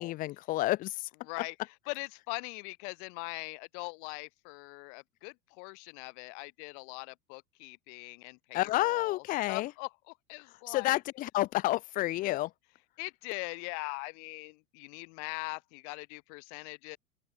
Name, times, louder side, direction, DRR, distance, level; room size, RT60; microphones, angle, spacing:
voice 1, 0.0-1.1 8.5-9.7 10.7-12.5, left 17 dB, 20° left, 0.4 m, -30 dB
voice 2, 1.3-11.0 12.2-12.3 13.0-17.0, left 37 dB, 50° left, 4.1 m, -41 dB
open air
figure-of-eight pair, 80°, 45 cm